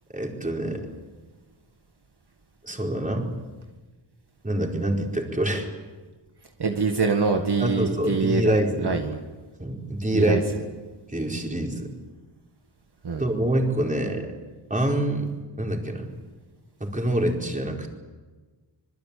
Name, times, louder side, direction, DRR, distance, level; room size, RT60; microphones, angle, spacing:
voice 1, 0.1-0.9 2.6-3.3 4.4-5.7 7.6-8.9 9.6-10.4 11.1-11.9 13.2-14.3 14.7-15.3 15.6-16.0 16.8-17.9, right 1 dB, 15° right, 0 dB, 4.7 m, -25 dB
voice 2, 6.6-9.2 10.1-10.4 13.0-13.3, right 4 dB, 60° right, 3 dB, 2.0 m, -24 dB
26.0 x 21.5 x 8.6 m, 1.3 s
wide cardioid pair, 105°, 45 cm